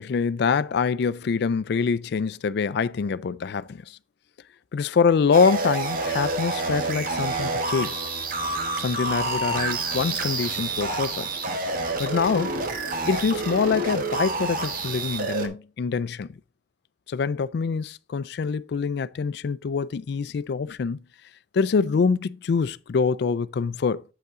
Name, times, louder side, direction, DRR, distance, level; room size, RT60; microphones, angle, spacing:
voice 1, 0.0-4.0 4.7-8.0 8.8-11.3 12.0-12.5 13.1-16.3 17.1-21.0 21.5-24.0, left 5 dB, 60° left, 0.4 m, -25 dB
sound 1, 5.3-15.5, right 3 dB, 50° right, 1.2 m, -28 dB
8.0 x 5.5 x 3.7 m
head